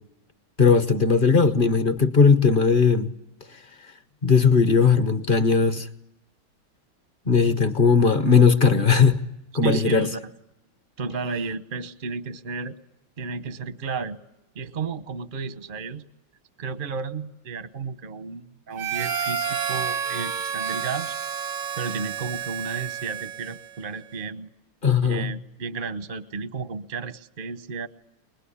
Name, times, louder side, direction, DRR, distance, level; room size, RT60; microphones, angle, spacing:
voice 1, 0.6-3.1 4.2-5.9 7.3-9.2 9.5-10.1 24.8-25.3, left 5 dB, 35° left, 0.9 m, -18 dB
voice 2, 9.6-10.3 11.0-12.8 13.2-14.2 14.5-16.0 16.6-21.1 21.8-24.5 25.0-27.9, right 5 dB, 40° right, 0.7 m, -33 dB
Harmonica, 18.8-23.8, right 7 dB, 90° right, 2.1 m, -30 dB
24.0 x 20.5 x 9.9 m
omnidirectional pair, 2.3 m